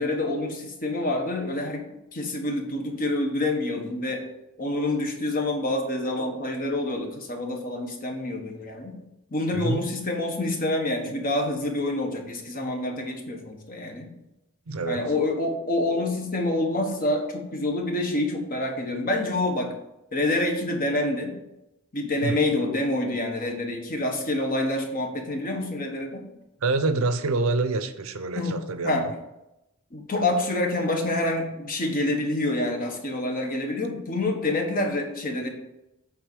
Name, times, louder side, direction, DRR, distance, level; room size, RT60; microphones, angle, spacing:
voice 1, 0.0-4.2 4.6-9.0 9.3-14.1 14.9-19.7 20.1-21.3 21.9-26.2 28.3-28.6 28.8-29.1 29.9-35.5, left 2 dB, 40° left, 2 dB, 1.3 m, -27 dB
voice 2, 9.5-9.9 14.7-15.1 22.2-22.4 26.6-29.1, right 3 dB, 70° right, 10 dB, 0.7 m, -26 dB
8.2 x 4.0 x 6.1 m, 0.91 s
head